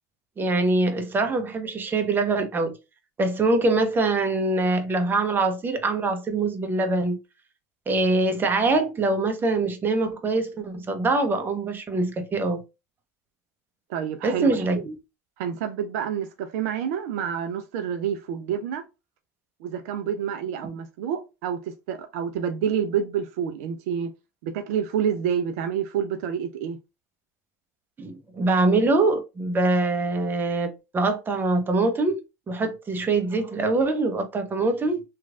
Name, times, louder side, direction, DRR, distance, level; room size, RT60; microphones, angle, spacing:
voice 1, 0.4-2.7 3.2-7.2 7.9-12.6 14.2-15.0 28.0-32.2 32.5-35.0, right 2 dB, 25° right, 0.7 m, -24 dB
voice 2, 13.9-14.6 15.4-18.8 19.6-24.1 24.4-26.8, right 8 dB, 65° right, 0.4 m, -28 dB
3.0 x 2.4 x 2.4 m
hypercardioid pair, 90°, 9 cm